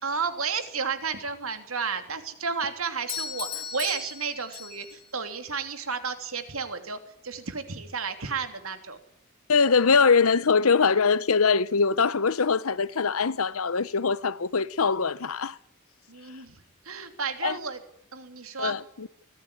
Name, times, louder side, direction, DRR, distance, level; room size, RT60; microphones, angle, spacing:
voice 1, 0.0-9.0 16.1-17.8 18.1-18.8, right 5 dB, 85° right, 3.2 m, -32 dB
Doorbell, 3.1-5.1, left 6 dB, 25° left, 3.5 m, -36 dB
voice 2, 9.5-15.6 17.4-17.6 18.6-19.1, left 5 dB, 90° left, 0.9 m, -22 dB
24.5 x 15.0 x 9.9 m
head